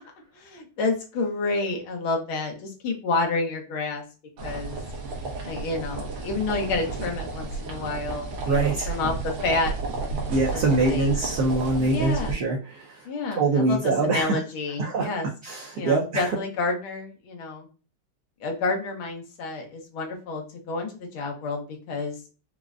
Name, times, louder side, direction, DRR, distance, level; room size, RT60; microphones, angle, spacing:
voice 1, 0.3-4.0 4.4-4.8 5.4-9.7 10.3-11.1 11.8-12.4 13.0-15.3 15.7-17.7 18.4-22.2, left 3 dB, 85° left, 2 dB, 1.7 m, -29 dB
sound 1, 4.4-12.3, right 3 dB, 80° right, 1.7 m, -32 dB
voice 2, 8.5-8.9 10.3-13.1 13.3-14.4 14.8-15.1 15.4-16.4, right 3 dB, 65° right, -2 dB, 1.1 m, -24 dB
4.8 x 2.1 x 2.4 m, 0.34 s
omnidirectional pair, 2.2 m